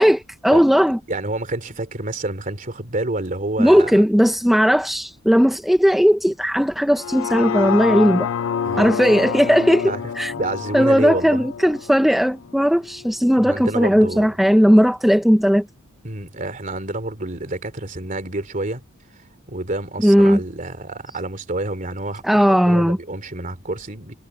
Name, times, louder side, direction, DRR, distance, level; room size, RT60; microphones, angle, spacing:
voice 1, 0.0-1.0 3.6-8.3 8.8-10.3 10.7-15.7 20.0-20.4 22.2-23.0, equal, ahead, 0.5 m, -17 dB
voice 2, 1.1-3.9 8.6-8.9 9.8-10.0 10.3-11.5 13.3-14.3 16.0-18.8 19.1-24.1, right 2 dB, 40° right, 2.9 m, -28 dB
sound 1, 6.9-13.1 13.5-13.6, left 7 dB, 70° left, 0.4 m, -27 dB
head